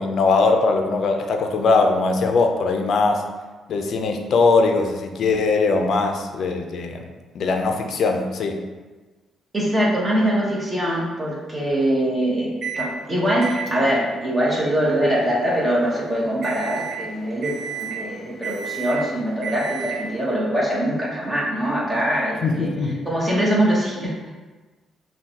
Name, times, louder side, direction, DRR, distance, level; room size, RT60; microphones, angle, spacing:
voice 1, 0.0-3.2 3.7-7.0 7.3-8.6 22.4-23.0, left 3 dB, 65° left, 4 dB, 0.5 m, -20 dB
voice 2, 9.5-22.7 23.0-24.3, equal, 20° right, -4 dB, 1.2 m, -23 dB
Microwave oven, 12.6-12.9 13.4-20.2, right 6 dB, 55° right, 0.6 m, -33 dB
5.6 x 2.3 x 2.9 m, 1.3 s
cardioid pair, 90°, 0 cm